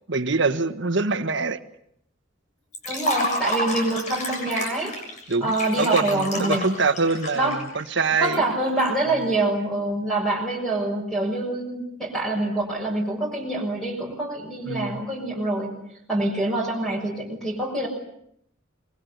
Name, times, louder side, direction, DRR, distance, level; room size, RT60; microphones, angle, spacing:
voice 1, 0.1-1.6 5.3-8.4 14.7-15.0, right 4 dB, 60° right, 9 dB, 1.6 m, -24 dB
Liquid, 2.7-8.9, left 1 dB, 40° left, 7.0 m, -30 dB
voice 2, 2.9-5.0 5.4-6.7 7.3-7.6 8.2-15.7 16.1-17.9, right 2 dB, ahead, 0 dB, 6.4 m, -25 dB
26.5 x 22.5 x 8.3 m, 0.72 s
head